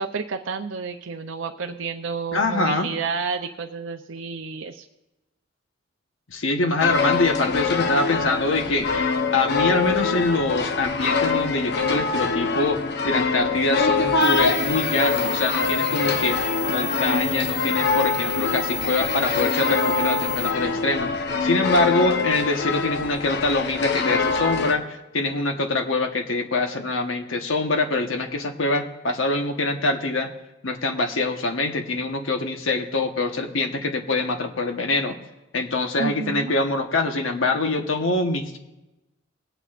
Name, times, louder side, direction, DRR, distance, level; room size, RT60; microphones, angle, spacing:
voice 1, 0.0-4.9 36.0-36.5, right 5 dB, 70° right, 4 dB, 0.5 m, -30 dB
voice 2, 2.3-2.9 6.3-21.1 21.4-30.3 30.6-35.1 35.5-38.6, left 2 dB, 80° left, 5 dB, 1.2 m, -24 dB
sound 1, 6.8-24.7, left 4 dB, 60° left, 0.9 m, -24 dB
sound 2, 14.2-20.5, left 3 dB, ahead, 0.6 m, -31 dB
19.0 x 9.1 x 2.5 m, 1.0 s
head